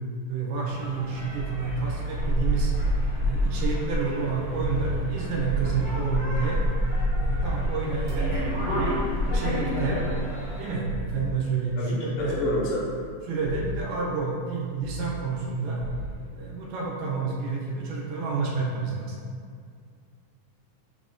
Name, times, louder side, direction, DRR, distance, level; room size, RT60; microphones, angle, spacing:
voice 1, 0.3-2.7 3.2-6.6 7.1-8.4 8.7-10.0 10.6-12.4 13.3-15.9 16.3-19.2, right 4 dB, 85° right, -4 dB, 2.2 m, -29 dB
sound 1, 0.7-10.7, left 1 dB, 55° left, 0.8 m, -29 dB
sound 2, 1.2-3.6 4.1-6.5 7.0-9.2 9.6-11.5 12.2-13.1 13.4-13.9 14.8-15.5 15.8-16.2, right 3 dB, 65° right, 2.1 m, -34 dB
voice 2, 11.8-12.9, left 1 dB, 80° left, -4 dB, 2.2 m, -29 dB
5.4 x 2.0 x 2.4 m, 2.1 s
omnidirectional pair, 3.8 m